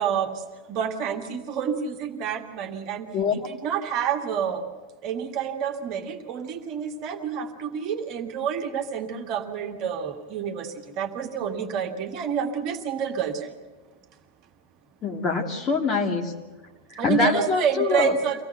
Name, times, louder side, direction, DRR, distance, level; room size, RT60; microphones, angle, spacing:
voice 1, 0.0-4.7 5.0-13.5 17.0-18.4, right 7 dB, 40° right, 4 dB, 1.8 m, -28 dB
voice 2, 15.0-16.3 16.9-18.2, left 5 dB, 30° left, 2 dB, 2.5 m, -24 dB
25.0 x 17.0 x 8.0 m, 1.3 s
figure-of-eight pair, 90°, 0 cm